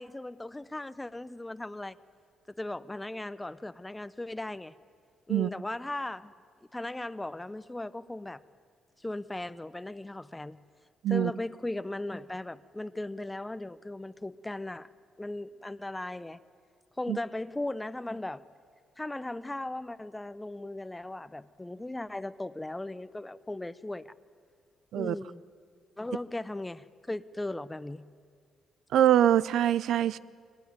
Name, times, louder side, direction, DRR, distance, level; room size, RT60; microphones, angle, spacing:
voice 1, 0.0-2.0 2.5-4.7 5.3-6.3 6.7-8.4 9.0-10.6 11.1-14.9 15.2-16.4 17.0-18.4 19.0-24.1 24.9-25.4 26.0-28.1, left 2 dB, 10° left, 0.6 m, -37 dB
voice 2, 28.9-30.2, right 11 dB, 75° right, 0.5 m, -24 dB
23.0 x 19.5 x 9.4 m
cardioid pair, 90°, 0 cm